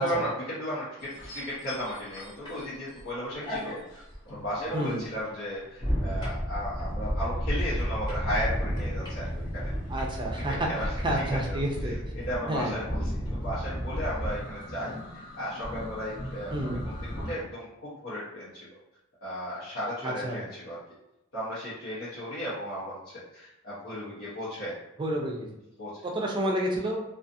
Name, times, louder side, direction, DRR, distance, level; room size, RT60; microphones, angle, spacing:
voice 1, 0.0-9.7 10.3-13.1 13.4-18.7 19.2-20.8 21.3-23.0 23.3-24.8 25.8-25.9, equal, 75° left, -11 dB, 0.9 m, -35 dB
sound 1, 1.0-3.0 3.4-17.3, equal, 20° left, 0.7 m, -33 dB
voice 2, 4.7-5.0 9.9-10.7 11.0-11.9 12.5-12.7 16.5-16.8 20.0-20.4 25.0-25.5 26.0-27.0, right 1 dB, 20° right, -1 dB, 0.4 m, -29 dB
2.4 x 2.4 x 2.6 m, 0.90 s
head